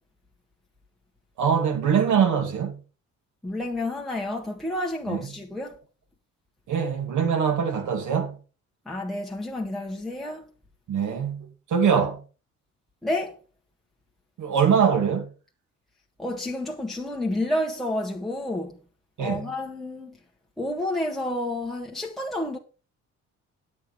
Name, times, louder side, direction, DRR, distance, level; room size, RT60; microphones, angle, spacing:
voice 1, 1.4-2.8 5.1-5.3 6.7-8.4 10.9-12.2 14.4-15.3 19.2-19.5, right 7 dB, 80° right, 2.4 m, -23 dB
voice 2, 3.4-5.8 8.8-10.5 13.0-13.4 16.2-18.8 19.2-20.2 20.6-22.6, left 1 dB, ahead, 1.5 m, -30 dB
9.1 x 8.6 x 4.9 m
cardioid pair, 90°, 30 cm